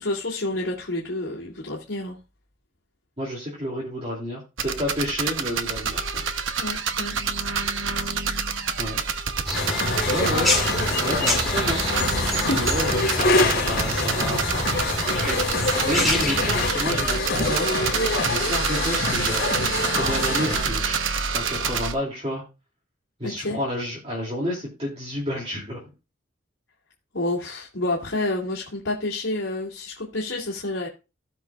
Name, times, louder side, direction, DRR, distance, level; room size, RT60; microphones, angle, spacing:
voice 1, 0.0-2.2 6.6-7.2 12.2-12.6 23.2-23.6 27.1-30.9, left 2 dB, 75° left, -4 dB, 2.4 m, -29 dB
voice 2, 3.2-6.3 8.0-8.3 8.8-9.0 10.0-10.6 11.0-11.8 12.5-14.9 15.2-15.4 15.8-17.7 18.2-21.0 21.3-22.4 23.2-25.9, equal, 30° right, -5 dB, 2.7 m, -30 dB
sound 1, 4.6-21.9, right 5 dB, 80° right, 1.0 m, -27 dB
sound 2, 9.5-20.6, left 2 dB, 55° left, 3.6 m, -26 dB
sound 3, 9.5-16.7, left 1 dB, ahead, 2.7 m, -28 dB
17.0 x 6.0 x 2.4 m, 0.30 s
head